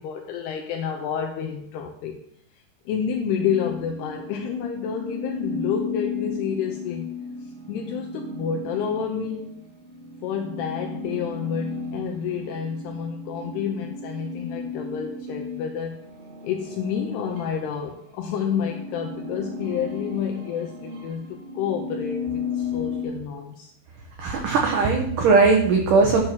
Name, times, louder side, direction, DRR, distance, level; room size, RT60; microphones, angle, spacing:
voice 1, 0.0-2.2 2.9-7.1 7.4-9.5 10.2-16.0 16.4-23.7, left 7 dB, 85° left, 3 dB, 2.4 m, -29 dB
sound 1, 3.3-17.9 18.3-23.0, left 4 dB, 75° right, 3.9 m, -34 dB
voice 2, 24.2-26.3, right 4 dB, 90° right, 1 dB, 1.8 m, -19 dB
11.0 x 4.5 x 6.3 m, 0.67 s
omnidirectional pair, 5.4 m